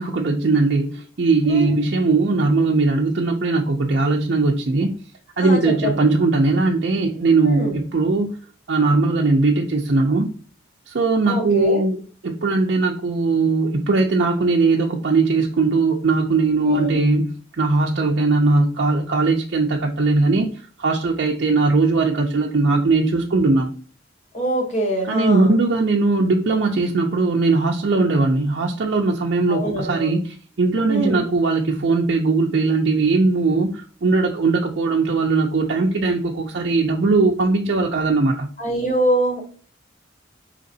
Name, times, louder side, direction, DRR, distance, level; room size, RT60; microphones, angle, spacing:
voice 1, 0.0-4.9 5.4-8.3 8.7-10.3 10.9-20.5 20.8-23.7 25.0-38.5, right 3 dB, 60° right, 0 dB, 0.4 m, -19 dB
voice 2, 1.5-1.8 5.4-6.0 7.5-7.7 11.3-11.8 16.6-17.0 24.3-25.5 29.5-30.1 30.9-31.2 38.6-39.4, equal, 35° left, 1 dB, 1.0 m, -23 dB
4.9 x 2.9 x 2.7 m, 0.41 s
head